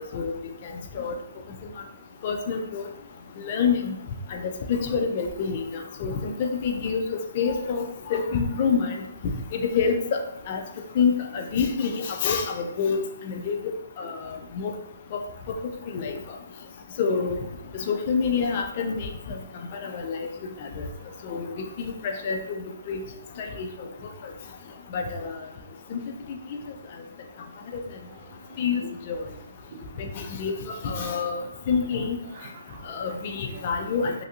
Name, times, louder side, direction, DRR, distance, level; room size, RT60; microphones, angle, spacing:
voice 1, 2.2-2.8 3.4-3.9 4.3-5.6 6.0-7.0 7.4-7.8 8.1-8.9 9.7-10.2 10.5-10.6 11.0-13.0 13.3-13.6 14.0-14.7 15.9-16.2 17.0-17.4 17.9-19.1 19.8-20.2 20.8-20.9 21.2-21.5 22.2-22.6 22.9-23.0 23.4-23.7 24.9-25.3 25.9-26.0 27.7-27.8 28.6-28.8 29.1-29.2 30.2-30.5 30.8-32.2 32.9-34.1, left 5 dB, 40° left, 3 dB, 0.4 m, -26 dB
voice 2, 28.1-28.9 31.9-32.8 33.5-33.7 34.0-34.1, right 5 dB, 50° right, 4 dB, 0.6 m, -45 dB
3.2 x 2.6 x 2.7 m, 0.84 s
hypercardioid pair, 150°, 0 cm